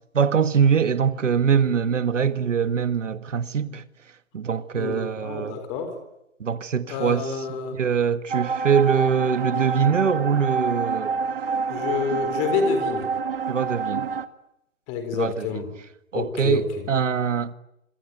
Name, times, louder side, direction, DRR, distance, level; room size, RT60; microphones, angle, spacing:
voice 1, 0.1-3.8 4.3-5.6 6.4-7.3 7.7-11.2 13.5-14.1 15.1-15.6 16.1-17.5, right 7 dB, 70° right, 1.8 m, -23 dB
voice 2, 4.7-6.0 6.9-7.8 11.7-13.1 14.9-15.7 16.1-16.8, left 6 dB, 15° left, 4.2 m, -28 dB
sound 1, 8.3-14.3, right 5 dB, 45° right, 1.7 m, -27 dB
27.5 x 23.5 x 9.4 m
hypercardioid pair, 165°, 39 cm